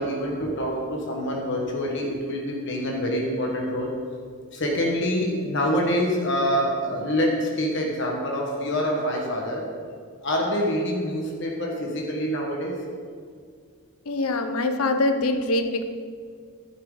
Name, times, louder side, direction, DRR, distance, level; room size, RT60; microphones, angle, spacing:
voice 1, 0.0-4.1 4.5-9.7 10.2-12.8, equal, 55° left, -1 dB, 1.5 m, -26 dB
voice 2, 14.1-15.8, left 2 dB, 80° left, 8 dB, 0.8 m, -24 dB
11.0 x 9.8 x 3.9 m, 2.1 s
head